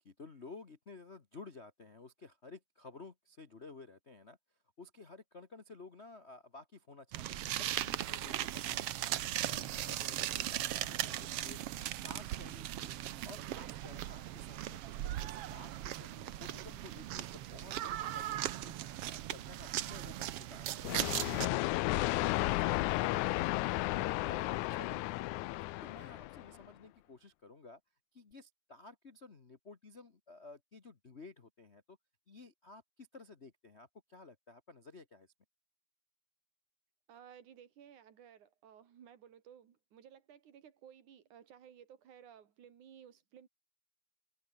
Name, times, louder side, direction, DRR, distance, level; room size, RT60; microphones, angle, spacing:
voice 1, 0.0-4.4 4.8-9.1 9.5-25.4 25.8-27.8 28.1-32.0 32.3-35.3, left 3 dB, 45° left, 0.8 m, -54 dB
sound 1, 7.1-21.5, right 13 dB, 65° right, 1.6 m, -38 dB
sound 2, 20.8-26.6, left 19 dB, 85° left, 2.0 m, -33 dB
voice 2, 37.1-43.5, right 9 dB, 80° right, 3.8 m, -57 dB
open air
omnidirectional pair, 3.5 m